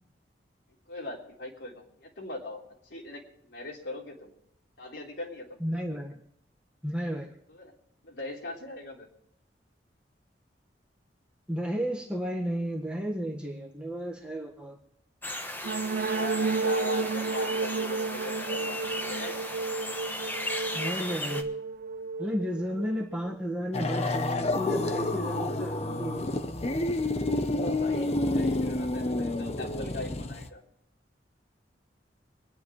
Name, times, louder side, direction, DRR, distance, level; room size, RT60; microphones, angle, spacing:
voice 1, 0.9-2.6 2.9-4.3 4.8-5.6 7.5-7.7 8.0-9.1 16.1-19.4 27.4-30.6, left 2 dB, 85° left, -2 dB, 3.8 m, -40 dB
voice 2, 5.6-6.2 6.8-7.3 11.5-14.8 20.7-21.5 22.2-26.7, equal, 5° right, -2 dB, 1.5 m, -33 dB
sound 1, 15.2-21.4, left 1 dB, 10° left, 1.1 m, -36 dB
sound 2, 15.6-23.3, right 4 dB, 55° right, 0.4 m, -32 dB
sound 3, 23.7-30.5, left 2 dB, 35° left, 0.9 m, -29 dB
27.0 x 10.5 x 3.2 m, 0.80 s
head